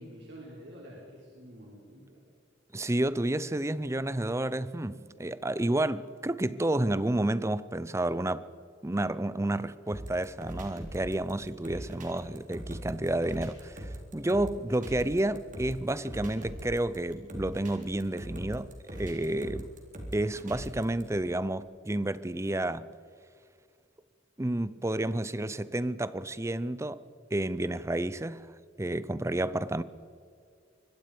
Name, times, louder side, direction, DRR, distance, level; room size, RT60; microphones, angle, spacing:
voice 1, 0.0-2.2 11.6-11.9, equal, 70° right, 4.6 m, -48 dB
voice 2, 2.7-8.5 8.8-19.7 20.1-22.9 24.4-27.0 27.3-28.5 28.8-29.8, right 1 dB, 15° right, 0.6 m, -30 dB
sound 1, 9.9-21.0, equal, 40° right, 3.9 m, -41 dB
25.0 x 21.0 x 5.2 m
head